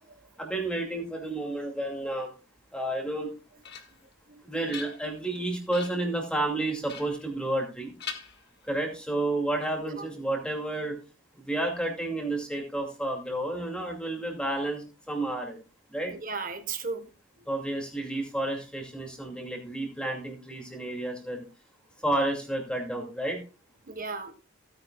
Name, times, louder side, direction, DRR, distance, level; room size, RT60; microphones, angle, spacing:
voice 1, 0.4-2.3 2.7-3.3 4.4-7.9 8.6-11.0 11.4-15.6 15.9-16.1 17.5-21.5 22.0-23.4, right 1 dB, 5° left, 1 dB, 2.4 m, -31 dB
sound 1, 3.1-4.1 4.5-5.3 5.7-6.1 6.9-7.7 8.0-9.0, left 7 dB, 55° left, 1.6 m, -43 dB
voice 2, 16.1-17.1 23.8-24.3, right 4 dB, 40° right, 9 dB, 1.4 m, -36 dB
16.5 x 9.4 x 2.3 m, 0.32 s
head